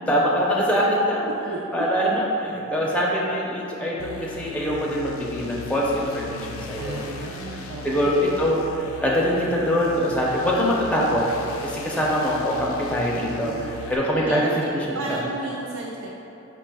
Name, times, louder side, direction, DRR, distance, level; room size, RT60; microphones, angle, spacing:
voice 1, 0.1-1.3 1.7-7.0 7.8-8.6 9.0-11.2 11.6-14.4 15.1-15.2, equal, 5° left, -5 dB, 0.4 m, -23 dB
voice 2, 1.5-1.8 6.8-8.4 12.9-13.0 13.4-13.7 14.1-14.7 14.9-16.1, right 3 dB, 70° right, -2 dB, 0.3 m, -34 dB
sound 1, 4.0-14.0, left 4 dB, 80° left, 0.4 m, -39 dB
4.5 x 2.2 x 4.6 m, 3.0 s
head